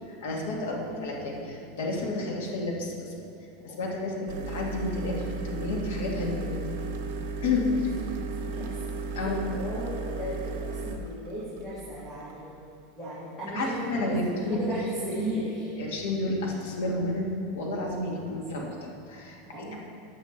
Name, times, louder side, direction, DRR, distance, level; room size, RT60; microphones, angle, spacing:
voice 1, 0.1-3.3 3.6-4.2 4.5-5.2 5.4-6.6 7.4-7.9 9.1-9.4 13.5-14.6 14.9-15.2 15.8-17.2 17.5-19.8, left 2 dB, 75° left, -2 dB, 2.2 m, -31 dB
voice 2, 0.6-1.6 8.0-8.7 9.2-12.4 13.0-14.8 15.1-15.7 19.5-19.8, equal, 10° left, -12 dB, 2.3 m, -36 dB
sound 1, 4.3-12.5, right 3 dB, 60° right, 1.0 m, -35 dB
15.5 x 8.9 x 3.0 m, 2.6 s
supercardioid pair, 170°, 0 cm